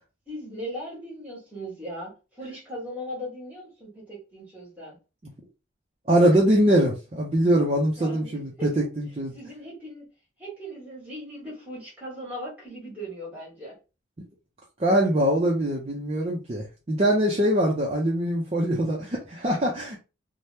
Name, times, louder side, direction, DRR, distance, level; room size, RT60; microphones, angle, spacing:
voice 1, 0.3-5.0 8.0-8.7 9.3-10.1 10.4-13.8, equal, 5° right, 1.3 m, -38 dB
voice 2, 6.1-9.3 14.8-20.0, right 1 dB, 30° right, 0.5 m, -23 dB
2.8 x 2.1 x 3.3 m
head